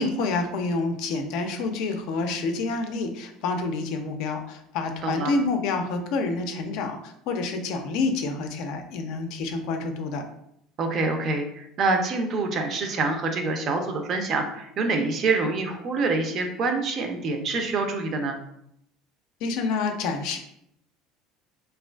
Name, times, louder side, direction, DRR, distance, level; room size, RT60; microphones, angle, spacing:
voice 1, 0.0-10.2 19.4-20.4, left 3 dB, 70° left, 5 dB, 0.4 m, -28 dB
voice 2, 5.0-5.3 10.8-18.4, right 3 dB, 45° right, 5 dB, 0.4 m, -26 dB
2.4 x 2.3 x 2.2 m, 0.74 s
supercardioid pair, 110°, 0 cm